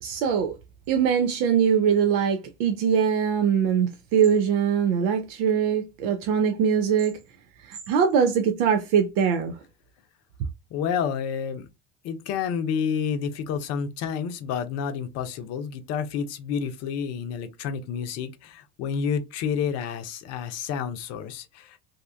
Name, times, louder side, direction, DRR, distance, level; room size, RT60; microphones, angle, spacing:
voice 1, 0.0-0.6 0.9-7.2 7.6-9.6, right 7 dB, 65° right, 0.5 m, -22 dB
voice 2, 10.7-11.7 12.0-21.8, left 7 dB, 55° left, 0.7 m, -29 dB
2.7 x 2.2 x 2.5 m
hypercardioid pair, 80°, 30 cm